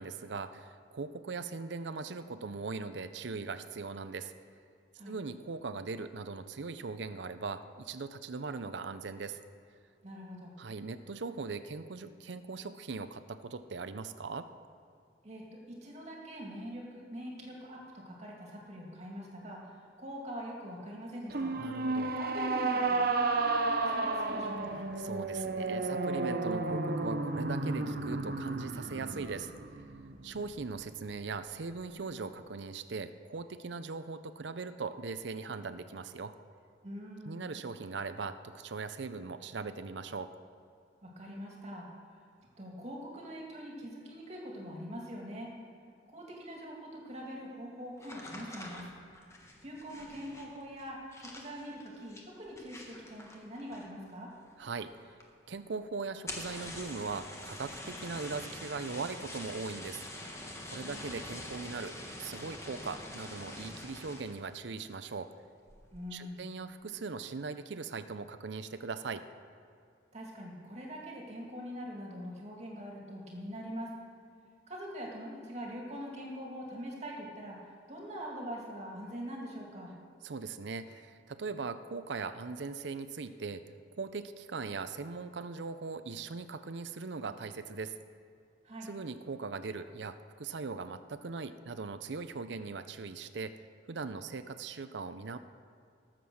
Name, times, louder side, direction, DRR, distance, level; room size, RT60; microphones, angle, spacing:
voice 1, 0.0-4.3 5.1-9.4 10.6-14.5 21.6-22.2 25.0-29.5 30.2-36.3 37.3-40.3 54.6-55.1 55.5-60.0 60.7-65.3 66.1-69.3 80.2-83.6 84.0-87.9 88.8-93.5 93.9-95.4, right 4 dB, 75° right, 11 dB, 0.6 m, -40 dB
voice 2, 10.0-10.5 15.2-21.5 22.2-24.8 36.8-37.4 41.0-41.9 42.6-45.5 46.1-48.9 49.6-54.3 60.8-61.1 65.9-66.4 70.1-73.9 74.7-79.9 88.6-88.9, equal, 35° right, -2 dB, 2.5 m, -43 dB
sound 1, 21.3-30.7, right 3 dB, 55° right, 0.9 m, -32 dB
sound 2, 48.0-54.1 54.4-54.9 55.2-55.3 55.6-55.7 56.1-64.5 64.9-65.3 65.7-66.1, left 1 dB, 15° left, 1.5 m, -45 dB
19.5 x 7.6 x 6.4 m, 2.3 s
head